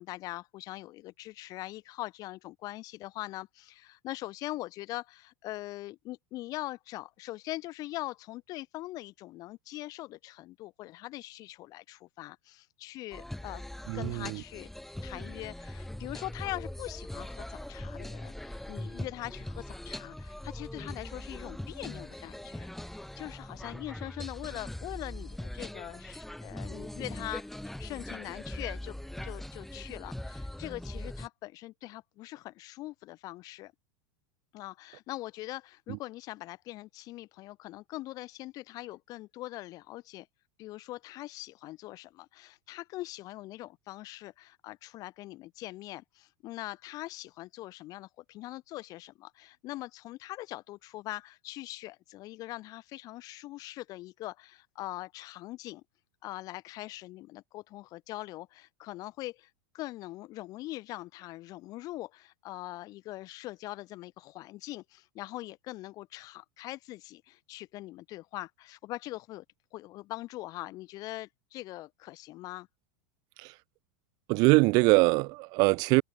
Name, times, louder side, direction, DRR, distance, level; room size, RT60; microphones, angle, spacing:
voice 1, 0.0-13.6 13.9-14.7 15.0-22.7 23.2-27.5 27.8-29.0 29.2-33.7 34.5-40.3 40.6-55.8 56.2-69.4 69.7-72.7, left 17 dB, 45° left, 1.0 m, -42 dB
sound 1, 13.1-31.3, left 1 dB, 5° left, 1.2 m, -41 dB
voice 2, 13.9-14.4 74.3-76.0, right 26 dB, 50° right, 0.5 m, -23 dB
hypercardioid pair, 120°, 9 cm